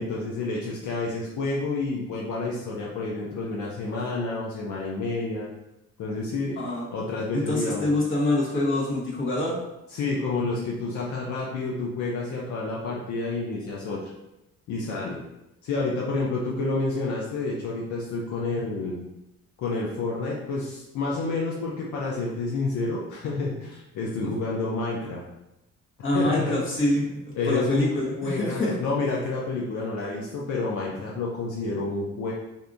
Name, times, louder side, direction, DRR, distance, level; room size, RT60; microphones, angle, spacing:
voice 1, 0.0-5.5 6.0-6.6 6.9-7.9 9.9-14.1 14.7-15.2 15.6-19.0 19.6-25.2 26.1-26.6 26.9-27.1 27.4-32.3, left 3 dB, 75° left, -3 dB, 0.6 m, -29 dB
voice 2, 7.3-9.6 26.0-27.0 27.5-28.7, left 1 dB, 40° left, -4 dB, 1.2 m, -25 dB
3.6 x 2.7 x 2.6 m, 0.93 s
cardioid pair, 90°, 30 cm